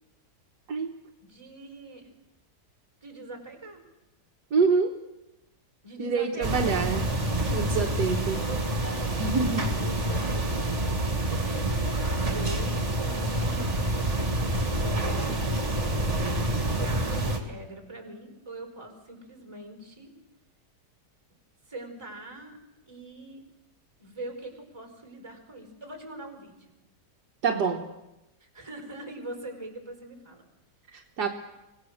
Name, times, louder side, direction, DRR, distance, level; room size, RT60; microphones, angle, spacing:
voice 1, 1.2-2.1 3.0-3.8 5.8-7.7 9.8-10.6 11.3-14.5 14.8-15.6 16.7-20.1 21.7-22.6 22.8-23.4 24.0-26.6 27.5-27.6 28.4-30.4, right 1 dB, 15° right, 4 dB, 4.7 m, -42 dB
voice 2, 4.5-5.0 6.0-7.0 7.5-8.4 9.1-9.7 27.4-27.8 30.9-31.3, right 5 dB, 70° right, 3 dB, 1.8 m, -26 dB
sound 1, 6.4-17.4, right 1 dB, 40° right, 2.8 m, -27 dB
25.0 x 18.0 x 6.5 m, 0.96 s
omnidirectional pair, 1.9 m